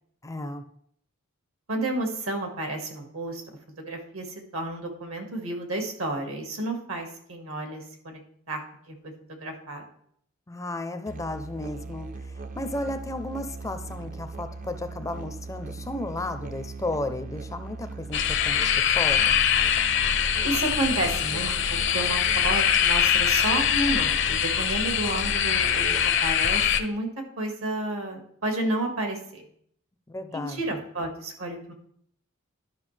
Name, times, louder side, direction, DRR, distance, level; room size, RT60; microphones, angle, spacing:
voice 1, 0.2-0.6 10.5-19.5 30.1-30.6, left 2 dB, 15° left, 8 dB, 0.5 m, -34 dB
voice 2, 1.7-3.4 3.9-8.2 8.5-8.6 8.9-9.0 9.4-9.9 20.4-25.9 26.2-27.1 27.4-29.4 30.3-31.7, right 2 dB, 75° right, 4 dB, 1.7 m, -31 dB
Musical instrument, 11.1-26.4, right 3 dB, 40° right, 0.5 m, -40 dB
sound 1, 18.1-26.8, left 8 dB, 60° left, 0.6 m, -23 dB
11.5 x 5.7 x 3.3 m, 0.66 s
head